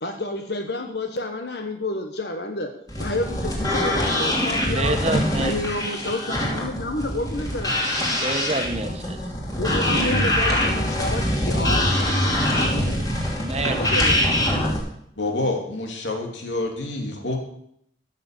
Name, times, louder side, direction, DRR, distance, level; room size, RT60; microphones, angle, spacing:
voice 1, 0.0-2.7 3.0-5.0 5.4-7.8 9.6-12.2 12.5-13.0 13.8-14.2, left 2 dB, 65° left, 5 dB, 1.2 m, -29 dB
sound 1, 2.9-14.8, left 1 dB, 20° left, 2.8 m, -23 dB
voice 2, 4.7-5.5 8.0-9.2 13.2-13.9, right 2 dB, 35° right, 6 dB, 1.3 m, -27 dB
voice 3, 15.2-17.4, left 2 dB, 85° left, 2 dB, 2.9 m, -27 dB
15.0 x 6.9 x 6.8 m, 0.71 s
head